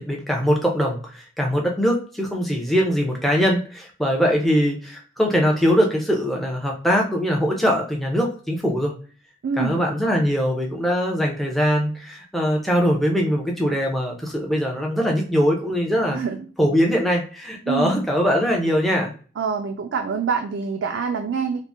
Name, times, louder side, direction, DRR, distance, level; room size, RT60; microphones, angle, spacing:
voice 1, 0.0-8.9 9.6-16.2 16.6-19.1, equal, ahead, 0 dB, 0.5 m, -22 dB
voice 2, 9.4-9.8 16.1-16.5 17.7-18.0 19.4-21.6, right 6 dB, 80° right, 4 dB, 0.3 m, -25 dB
3.4 x 2.1 x 2.5 m, 0.39 s
head